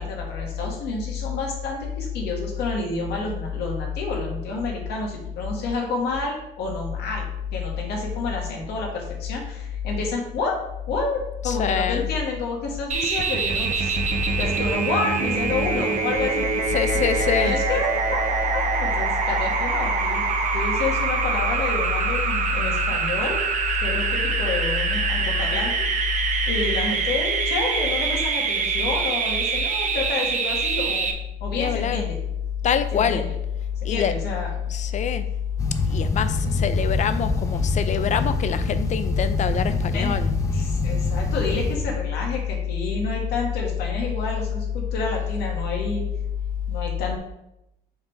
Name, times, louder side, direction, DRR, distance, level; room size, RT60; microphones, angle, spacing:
voice 1, 0.0-10.6 10.9-13.9 14.4-16.5 16.9-20.2 20.5-23.4 23.8-25.9 26.5-31.1 31.4-32.1 32.9-33.2 33.9-34.5 39.7-40.1 40.5-46.0 46.7-47.2, left 3 dB, 75° left, 0 dB, 1.9 m, -29 dB
voice 2, 11.4-12.1 16.7-17.6 31.6-32.1 32.6-33.3 33.8-34.2 34.7-35.2 35.9-40.3, left 8 dB, 45° left, 11 dB, 0.6 m, -24 dB
sound 1, 12.9-31.1, right 5 dB, 45° right, 0.8 m, -25 dB
sound 2, 35.6-41.8, left 2 dB, 20° left, 0.9 m, -26 dB
6.3 x 3.6 x 4.8 m, 0.85 s
cardioid pair, 110°, 17 cm